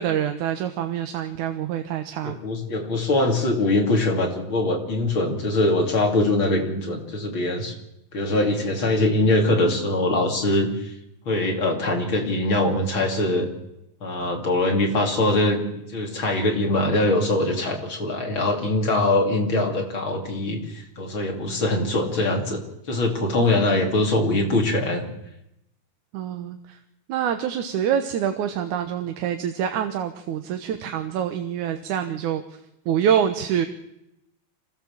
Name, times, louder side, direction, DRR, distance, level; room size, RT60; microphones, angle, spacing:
voice 1, 0.0-2.4 23.4-23.8 26.1-26.8 27.1-32.4 32.9-33.7, right 9 dB, 85° right, 7 dB, 2.6 m, -26 dB
voice 2, 2.2-7.7 8.1-10.7 11.3-13.5 14.0-15.6 15.9-22.6 22.9-25.0, left 2 dB, 40° left, 1 dB, 3.7 m, -22 dB
26.0 x 16.5 x 7.4 m, 0.85 s
omnidirectional pair, 3.4 m